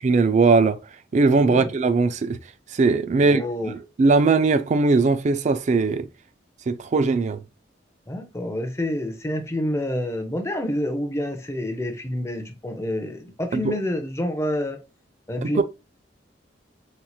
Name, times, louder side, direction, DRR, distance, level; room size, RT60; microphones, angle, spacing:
voice 1, 0.0-0.8 1.1-2.4 2.7-3.7 4.0-6.1 6.7-7.4 13.5-13.7 15.4-15.6, right 4 dB, 40° right, 0.4 m, -19 dB
voice 2, 1.4-1.7 3.2-3.7 8.1-14.8 15.3-15.6, left 1 dB, 15° left, 0.6 m, -28 dB
4.3 x 2.8 x 2.3 m
head